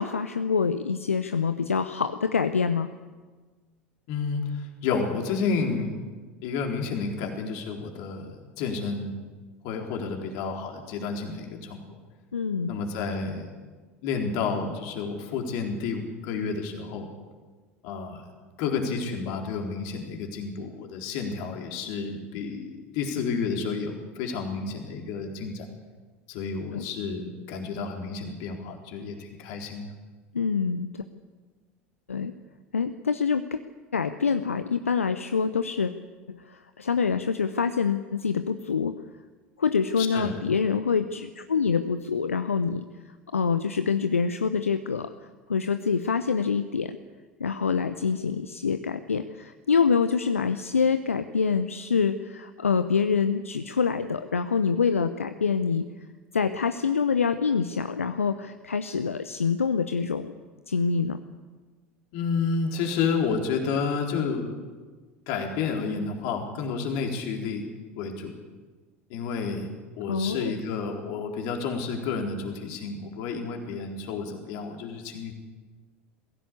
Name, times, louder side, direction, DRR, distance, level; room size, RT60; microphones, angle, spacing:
voice 1, 0.0-2.9 12.3-12.7 26.7-26.8 30.3-31.0 32.1-32.3 32.7-33.6 33.9-35.9 36.3-39.0 39.6-42.8 43.3-45.1 45.5-47.0 47.4-55.9 56.3-60.3 60.7-61.2 70.1-70.5, left 5 dB, 80° left, 11 dB, 0.8 m, -26 dB
voice 2, 4.1-4.4 4.8-5.9 6.4-9.3 9.6-12.0 12.7-13.5 14.0-17.1 17.8-18.2 18.6-25.7 26.3-29.9 40.0-40.4 62.1-64.5 65.3-67.6 68.0-68.3 69.1-69.7 70.0-75.3, left 5 dB, 55° left, 2 dB, 4.0 m, -30 dB
22.5 x 16.0 x 8.4 m, 1.4 s
figure-of-eight pair, 75°, 7 cm